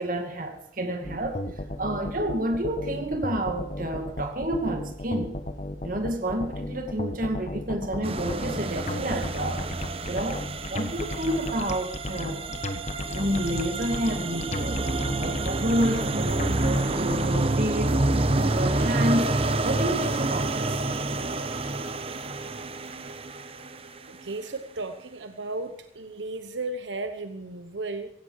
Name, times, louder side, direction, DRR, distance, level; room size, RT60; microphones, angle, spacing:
voice 1, 0.0-1.4 1.8-5.4 5.8-9.6 10.1-12.6 13.1-14.8 15.2-18.0 18.3-19.3 19.6-20.8, right 1 dB, 50° right, 5 dB, 2.3 m, -29 dB
sound 1, 1.0-17.4, left 1 dB, 40° left, 1.3 m, -34 dB
sound 2, 8.0-24.2, right 2 dB, 30° right, 0.9 m, -28 dB
voice 2, 24.1-28.1, right 2 dB, 85° right, 8 dB, 1.0 m, -35 dB
16.5 x 16.0 x 4.8 m, 0.70 s
head